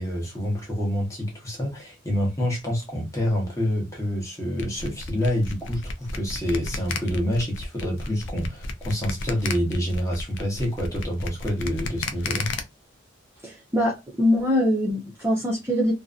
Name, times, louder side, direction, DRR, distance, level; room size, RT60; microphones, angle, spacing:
voice 1, 0.0-12.5, equal, 15° left, 0.9 m, -27 dB
sound 1, 4.6-12.6, left 3 dB, 65° left, 0.4 m, -33 dB
voice 2, 13.4-15.9, left 1 dB, 10° right, 0.7 m, -23 dB
2.6 x 2.2 x 2.4 m
head